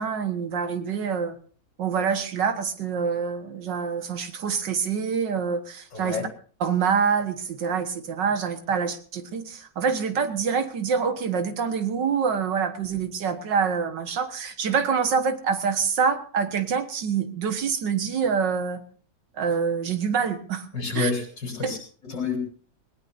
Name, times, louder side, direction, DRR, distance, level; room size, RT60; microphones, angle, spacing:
voice 1, 0.0-1.4 1.8-6.2 6.6-18.8 19.4-20.7 20.9-21.1 21.6-21.7, right 6 dB, 80° right, 7 dB, 2.1 m, -26 dB
voice 2, 5.9-6.2 20.7-22.4, left 4 dB, 75° left, 1 dB, 4.9 m, -29 dB
19.5 x 19.0 x 2.7 m, 0.43 s
omnidirectional pair, 1.9 m